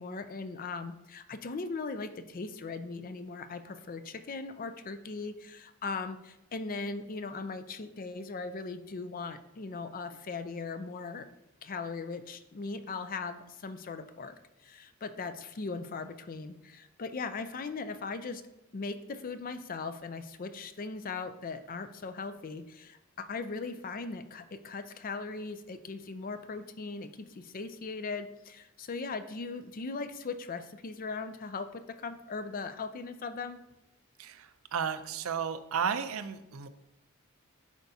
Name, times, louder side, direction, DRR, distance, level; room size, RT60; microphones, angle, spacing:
voice 1, 0.0-11.3 11.6-14.4 14.6-18.4 18.7-33.6, left 4 dB, 40° left, 10 dB, 0.5 m, -39 dB
voice 2, 34.2-36.7, right 7 dB, 80° right, 10 dB, 0.5 m, -33 dB
10.5 x 4.6 x 2.8 m, 0.92 s
head